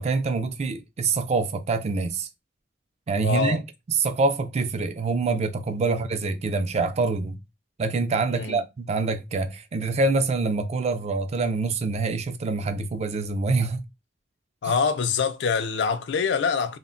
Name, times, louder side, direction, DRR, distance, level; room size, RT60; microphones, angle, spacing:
voice 1, 0.0-2.3 3.1-3.6 4.0-7.4 7.8-13.8, right 3 dB, 35° right, 0.3 m, -25 dB
voice 2, 3.2-3.6 5.8-6.0 8.3-8.6 14.6-16.8, left 5 dB, 70° left, 0.4 m, -25 dB
2.2 x 2.0 x 3.6 m
head